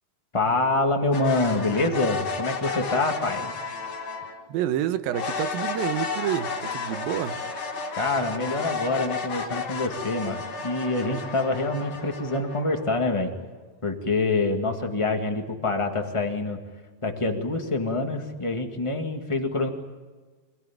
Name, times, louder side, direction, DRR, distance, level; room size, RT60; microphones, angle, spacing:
voice 1, 0.3-3.5 8.0-13.3 13.8-16.6 17.0-19.7, left 2 dB, 25° left, 0.6 m, -26 dB
sound 1, 1.1-4.4 5.1-13.3, left 4 dB, 45° left, 3.2 m, -33 dB
voice 2, 4.5-7.4, right 11 dB, 75° right, 2.8 m, -28 dB
26.0 x 17.5 x 10.0 m
omnidirectional pair, 4.3 m